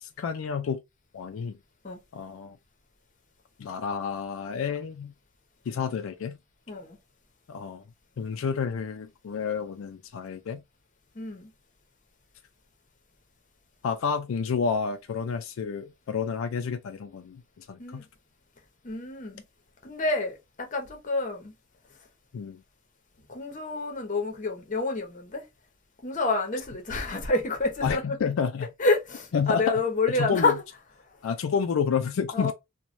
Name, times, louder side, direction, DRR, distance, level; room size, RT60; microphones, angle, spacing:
voice 1, 0.0-0.8 1.1-1.6 2.1-2.6 3.6-5.1 5.7-6.4 7.5-7.8 8.2-10.6 13.8-18.0 22.3-22.6 27.8-28.7 29.3-29.8 30.2-30.5 31.2-32.5, left 6 dB, 90° left, 0.4 m, -30 dB
voice 2, 6.7-7.0 11.1-11.5 17.8-18.0 18.8-19.4 19.8-21.5 23.3-25.5 26.0-28.2 28.8-30.5 32.3-32.5, left 3 dB, 40° left, 0.8 m, -28 dB
3.1 x 2.2 x 2.5 m
head